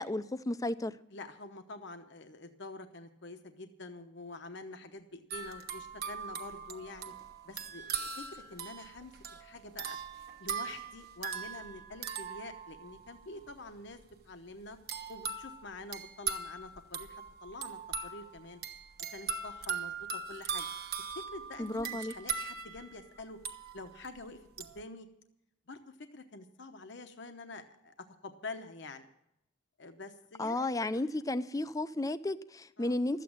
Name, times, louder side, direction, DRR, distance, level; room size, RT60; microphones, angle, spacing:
voice 1, 0.0-0.9 21.6-22.1 30.4-33.2, left 2 dB, 20° left, 14 dB, 0.5 m, -33 dB
voice 2, 1.1-7.1 7.4-9.1 9.4-10.0 10.4-14.0 14.2-14.8 15.1-18.6 19.1-20.7 21.1-23.4 23.7-25.1 25.7-29.1 29.8-30.7 30.9-31.0 32.8-33.0, left 2 dB, 65° left, 7 dB, 0.9 m, -47 dB
sound 1, 5.3-13.2 14.9-24.1 24.6-24.8, right 6 dB, 55° right, 1.2 m, -40 dB
13.0 x 8.5 x 8.6 m, 0.82 s
head